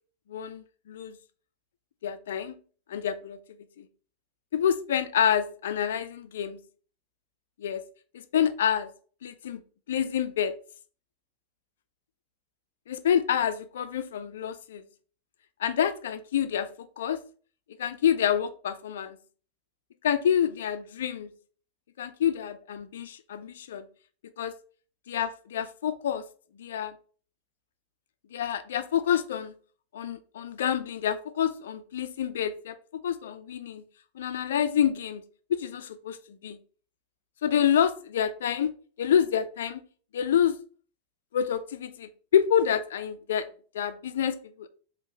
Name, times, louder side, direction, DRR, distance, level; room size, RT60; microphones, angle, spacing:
voice 1, 0.3-1.2 2.0-2.5 2.9-3.4 3.8-3.9 4.5-6.6 7.6-7.8 8.3-8.9 9.2-9.6 9.9-10.5 12.9-14.8 15.6-16.7 17.0-17.2 17.8-19.2 20.0-21.3 22.0-23.9 24.4-24.5 25.1-26.2 26.6-27.0 28.3-29.5 29.9-32.8 33.0-33.8 34.2-35.2 35.5-36.6 37.4-38.7 39.0-39.8 40.1-40.6 41.3-43.5 43.7-44.7, left 9 dB, 60° left, 0.4 m, -27 dB
3.7 x 2.9 x 3.6 m
figure-of-eight pair, 90°, 0 cm